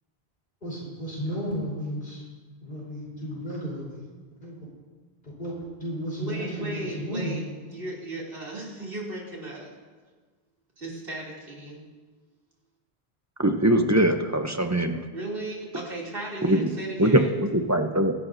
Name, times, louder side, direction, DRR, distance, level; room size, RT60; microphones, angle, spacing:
voice 1, 0.6-2.2 2.6-4.0 4.4-4.6 5.2-7.4, equal, 50° left, -7 dB, 4.3 m, -33 dB
voice 2, 6.2-9.7 10.8-11.8 15.1-17.4, right 2 dB, 60° right, -4 dB, 3.2 m, -36 dB
voice 3, 13.4-15.0 16.5-16.6 17.0-17.2 17.5-18.1, right 1 dB, 20° right, 6 dB, 0.7 m, -21 dB
24.0 x 12.0 x 2.7 m, 1.4 s
omnidirectional pair, 1.1 m